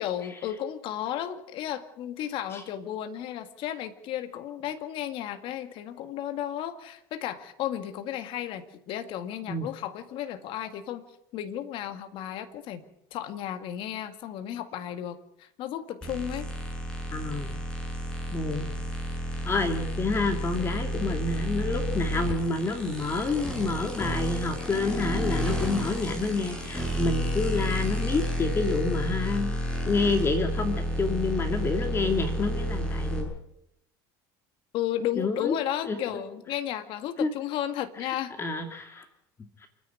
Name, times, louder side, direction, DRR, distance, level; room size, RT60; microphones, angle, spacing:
voice 1, 0.0-11.0 11.3-12.8 13.1-16.5 34.7-38.3, left 11 dB, 60° left, 8 dB, 2.0 m, -33 dB
sound 1, 16.0-33.2, equal, 10° left, 7.9 m, -31 dB
voice 2, 17.1-17.6 18.3-18.7 19.4-29.5 29.9-33.3 35.2-35.6 35.8-36.2 37.2-37.3 38.0-39.1 39.6-39.7, left 3 dB, 25° left, 5 dB, 2.3 m, -28 dB
28.0 x 10.5 x 9.5 m, 0.80 s
supercardioid pair, 120°, 10 cm